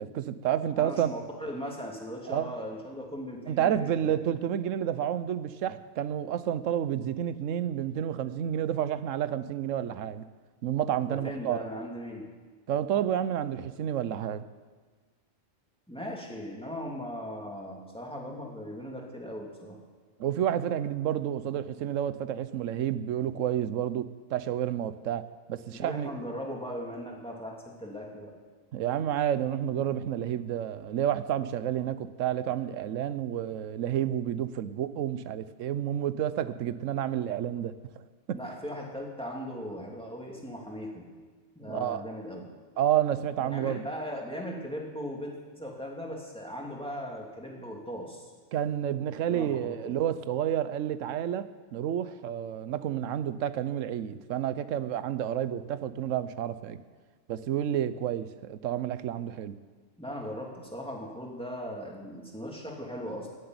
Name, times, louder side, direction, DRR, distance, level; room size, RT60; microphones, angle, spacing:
voice 1, 0.0-1.1 2.3-2.5 3.5-10.2 10.6-11.6 12.7-14.4 20.2-25.2 25.5-26.1 28.7-37.7 38.3-38.4 41.7-42.0 42.8-43.9 48.5-56.8 57.3-59.6, right 10 dB, 75° right, 14 dB, 1.1 m, -30 dB
voice 2, 0.8-4.1 11.1-12.2 15.9-19.8 25.7-28.3 38.3-41.1 41.6-42.4 43.4-48.3 49.3-50.0 60.0-63.3, equal, 5° left, -1 dB, 2.7 m, -38 dB
15.5 x 7.9 x 9.5 m, 1.4 s
omnidirectional pair, 1.3 m